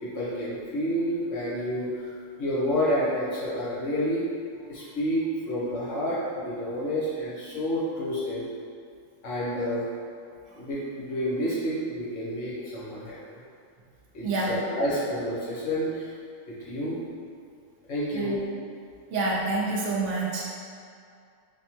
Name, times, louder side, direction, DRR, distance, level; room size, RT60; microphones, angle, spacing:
voice 1, 0.0-2.0 2.4-4.3 4.7-8.5 9.2-9.9 10.5-13.4 14.1-16.1 16.5-17.0 17.9-18.4, equal, 75° left, -8 dB, 1.2 m, -29 dB
voice 2, 14.2-14.6 18.1-18.4 19.1-20.4, right 3 dB, 75° right, -3 dB, 0.9 m, -28 dB
3.5 x 2.1 x 2.9 m, 2.4 s
omnidirectional pair, 1.3 m